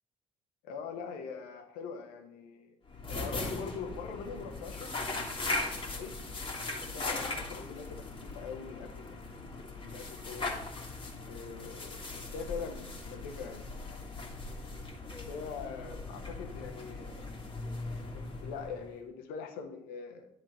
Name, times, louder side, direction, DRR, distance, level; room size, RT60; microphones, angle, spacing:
voice 1, 0.6-2.7 3.1-5.1 5.6-6.2 6.9-10.5 11.2-13.7 15.3-17.2 18.1-20.3, left 6 dB, 75° left, 3 dB, 1.2 m, -43 dB
sound 1, 2.9-19.0, left 2 dB, 30° left, 1.9 m, -39 dB
10.5 x 3.7 x 4.9 m, 0.78 s
hypercardioid pair, 45°, 16 cm